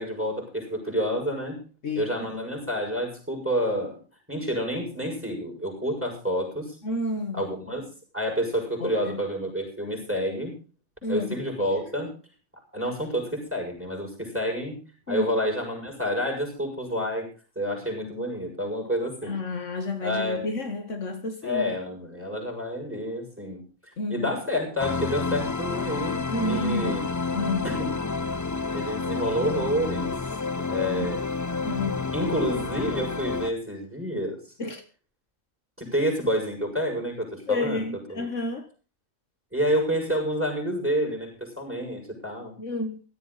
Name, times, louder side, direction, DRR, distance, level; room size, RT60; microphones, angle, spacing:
voice 1, 0.0-1.6 2.0-3.9 4.3-6.8 7.3-7.8 8.1-10.5 11.1-12.1 12.7-14.8 15.1-17.3 17.6-19.3 20.0-20.5 21.4-23.6 24.1-27.1 27.6-27.9 28.7-30.2 30.7-31.2 32.1-34.4 35.8-37.8 38.1-38.3 39.5-42.6, equal, 10° right, 6.8 m, -29 dB
voice 2, 1.8-2.3 6.8-7.5 8.8-9.2 11.0-11.4 15.1-15.3 19.2-21.7 24.0-24.4 26.3-27.0 27.3-27.7 31.0-31.1 31.7-32.1 34.6-34.8 37.5-38.7 42.6-43.0, left 2 dB, 65° left, 1.8 m, -30 dB
sound 1, 24.8-33.5, left 4 dB, 25° left, 0.4 m, -29 dB
17.0 x 13.5 x 4.1 m
omnidirectional pair, 1.4 m